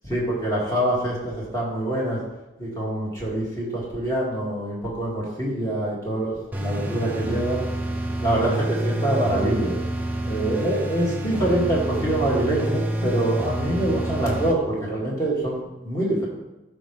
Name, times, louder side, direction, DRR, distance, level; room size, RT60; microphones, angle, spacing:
voice 1, 0.0-2.2 2.6-7.6 8.2-9.7 10.2-16.3, right 1 dB, 20° left, -6 dB, 2.3 m, -25 dB
sound 1, 6.5-14.5, right 1 dB, 10° right, 0.6 m, -28 dB
12.0 x 5.0 x 3.4 m, 0.99 s
head